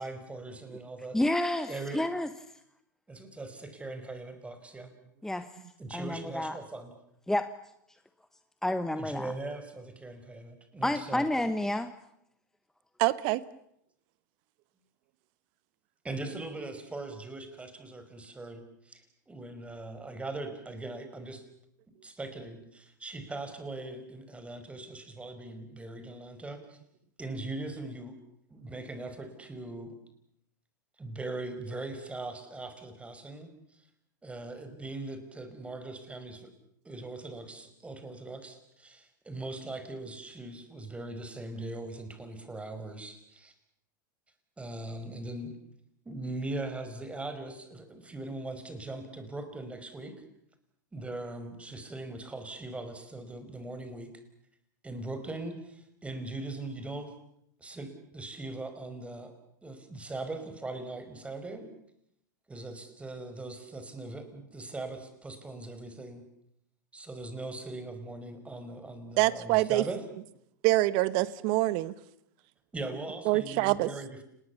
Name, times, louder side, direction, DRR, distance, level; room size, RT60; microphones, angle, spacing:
voice 1, 0.0-1.2 1.7-2.0 3.1-4.9 5.8-6.9 9.0-11.3 16.0-21.4 22.0-26.8 27.2-28.2 28.5-30.0 31.0-33.8 34.2-36.5 36.8-43.5 44.6-45.5 46.1-50.2 50.9-54.1 54.8-57.1 57.6-59.3 59.6-61.7 62.5-66.2 66.9-70.0 72.7-74.2, right 2 dB, 10° right, 8 dB, 5.3 m, -40 dB
voice 2, 1.1-2.3 5.2-5.5 5.9-6.6 7.3-7.5 8.6-9.3 10.8-11.9, left 1 dB, 5° left, 10 dB, 1.2 m, -29 dB
voice 3, 13.0-13.4 69.2-69.8 70.6-71.9 73.2-73.9, right 19 dB, 55° right, 17 dB, 1.2 m, -25 dB
29.5 x 20.5 x 7.2 m, 0.76 s
hypercardioid pair, 100°, 10 cm